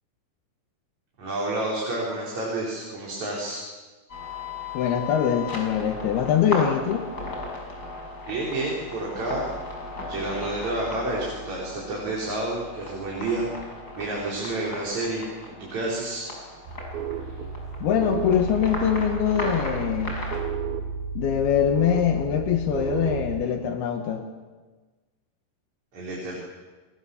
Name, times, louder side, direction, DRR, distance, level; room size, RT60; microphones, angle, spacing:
voice 1, 1.2-3.6 8.3-9.4 10.1-13.5 14.0-15.2 15.6-16.2 17.3-17.4 25.9-26.3, right 2 dB, 45° right, -4 dB, 5.7 m, -29 dB
sound 1, 4.1-20.4, left 2 dB, 20° left, 6.6 m, -36 dB
voice 2, 4.7-7.1 17.8-20.2 21.2-24.3, left 9 dB, 75° left, 5 dB, 3.3 m, -23 dB
sound 2, 16.7-23.5, right 6 dB, 70° right, 3.5 m, -32 dB
29.0 x 22.5 x 7.2 m, 1.3 s
omnidirectional pair, 4.7 m